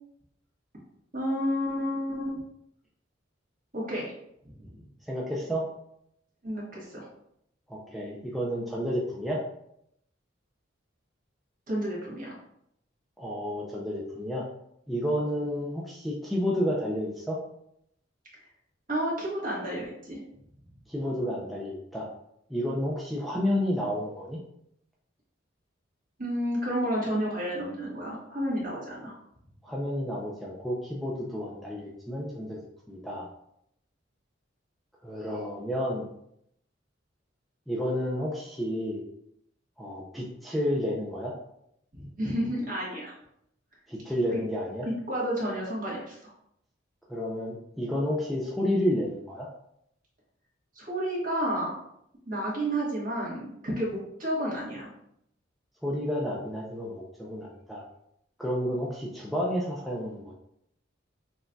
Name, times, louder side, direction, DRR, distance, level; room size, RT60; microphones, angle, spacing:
voice 1, 1.1-2.4 3.7-4.1 4.4-4.7 6.4-7.1 11.7-12.3 18.9-20.2 26.2-29.1 41.9-43.1 44.3-44.4 45.1-46.3 50.7-51.7 52.3-54.9, equal, 45° right, -5 dB, 1.4 m, -31 dB
voice 2, 5.1-5.7 7.7-9.4 13.2-14.5 14.9-17.4 20.9-22.1 22.5-24.4 29.6-32.6 32.9-33.3 35.0-36.1 37.7-39.0 39.8-41.3 43.9-44.9 47.1-49.5 55.8-57.8 58.4-60.3, equal, ahead, -5 dB, 0.4 m, -30 dB
6.0 x 2.6 x 2.3 m, 0.76 s
head